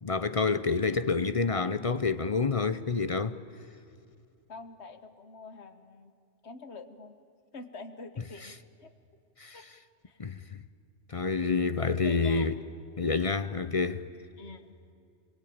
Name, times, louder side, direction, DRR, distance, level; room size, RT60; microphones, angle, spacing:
voice 1, 0.0-3.4 9.4-9.6 10.2-10.6 11.1-12.5 13.0-14.1, left 4 dB, 35° left, 0.6 m, -28 dB
voice 2, 4.5-6.1 6.4-7.2 7.5-8.9 9.5-9.6 10.0-10.2 12.0-12.5 14.4-14.7, left 3 dB, 70° left, 1.6 m, -46 dB
25.5 x 22.0 x 8.7 m
omnidirectional pair, 1.2 m